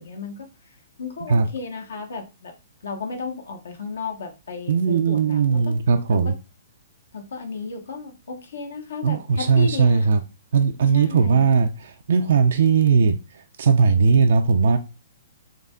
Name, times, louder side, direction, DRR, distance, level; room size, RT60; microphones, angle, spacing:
voice 1, 0.0-2.5 2.8-5.7 6.1-6.4 7.1-10.1 10.9-11.5, left 4 dB, 70° left, 1.0 m, -34 dB
voice 2, 4.7-6.3 9.0-10.2 10.5-11.7 12.1-13.2 13.6-14.8, right 5 dB, 60° right, 0.3 m, -18 dB
3.8 x 3.3 x 2.2 m
figure-of-eight pair, 120°, 0 cm